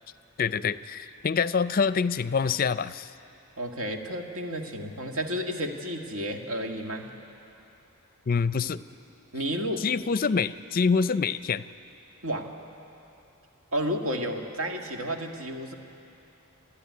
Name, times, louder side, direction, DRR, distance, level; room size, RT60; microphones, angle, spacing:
voice 1, 0.4-3.1 8.3-8.8 9.8-11.6, left 5 dB, 40° left, 14 dB, 0.5 m, -26 dB
voice 2, 3.6-7.1 9.3-9.9 12.2-12.5 13.7-15.7, equal, 75° right, 3 dB, 1.9 m, -31 dB
27.5 x 13.5 x 9.6 m, 2.9 s
head